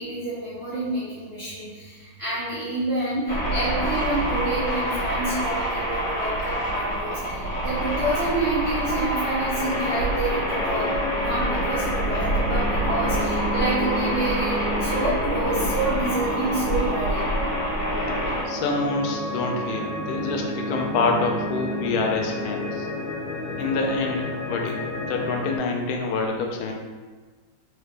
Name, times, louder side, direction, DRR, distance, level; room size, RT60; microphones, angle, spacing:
voice 1, 0.0-10.9 11.2-17.3, right 2 dB, 50° right, -11 dB, 0.7 m, -28 dB
sound 1, 3.3-18.4, right 1 dB, 65° left, 2.0 m, -27 dB
sound 2, 9.6-25.6, left 1 dB, 50° left, 1.5 m, -31 dB
voice 2, 18.5-22.9 23.6-26.7, left 3 dB, 85° left, 1 dB, 1.4 m, -26 dB
3.9 x 2.5 x 3.2 m, 1.3 s
omnidirectional pair, 2.2 m